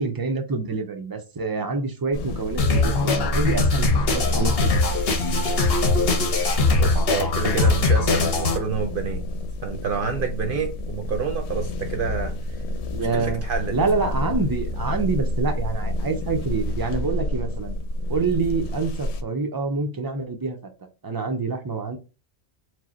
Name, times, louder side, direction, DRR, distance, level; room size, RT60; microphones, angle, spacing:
voice 1, 0.0-5.0 12.9-13.4 13.7-17.8 18.1-20.6 21.0-22.0, right 4 dB, 40° right, 0.3 m, -26 dB
sound 1, 2.1-19.2, left 1 dB, 80° left, 0.9 m, -28 dB
sound 2, 2.6-8.6, left 3 dB, 60° left, 1.0 m, -21 dB
voice 2, 6.8-9.2 9.6-12.4 13.1-13.8, right 6 dB, 60° right, 0.7 m, -28 dB
4.7 x 2.0 x 4.2 m
omnidirectional pair, 1.1 m